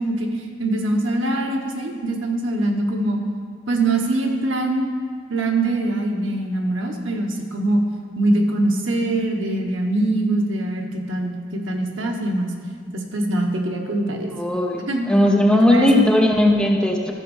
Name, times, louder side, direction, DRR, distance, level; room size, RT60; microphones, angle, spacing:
voice 1, 0.0-3.2 3.7-4.9 5.3-7.8 8.1-12.5 12.9-14.3 14.9-15.1 15.6-16.1, right 2 dB, 85° right, 2 dB, 1.3 m, -23 dB
voice 2, 14.3-14.8 15.1-17.1, left 1 dB, 5° left, -1 dB, 0.8 m, -17 dB
13.5 x 5.2 x 6.4 m, 2.1 s
head